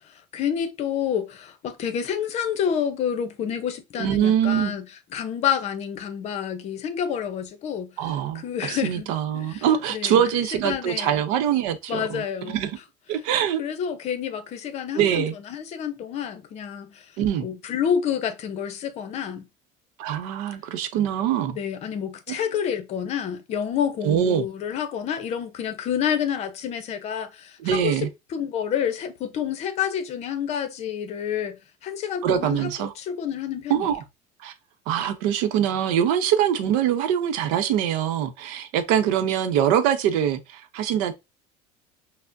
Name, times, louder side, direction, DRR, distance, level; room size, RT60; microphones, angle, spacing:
voice 1, 0.3-4.9 5.1-7.9 8.3-9.1 9.3-11.2 11.9-12.6 13.6-17.1 17.4-19.5 21.5-32.7 33.0-33.9, left 8 dB, 45° left, 0.7 m, -28 dB
voice 2, 4.0-4.8 8.0-12.8 13.1-13.6 14.9-15.3 17.2-17.5 20.0-21.6 22.3-22.4 24.0-24.5 27.6-28.1 32.2-32.9 33.7-34.0 34.4-34.5 34.9-41.1, right 9 dB, 80° right, 0.7 m, -23 dB
5.7 x 2.1 x 2.5 m
cardioid pair, 140°, 16 cm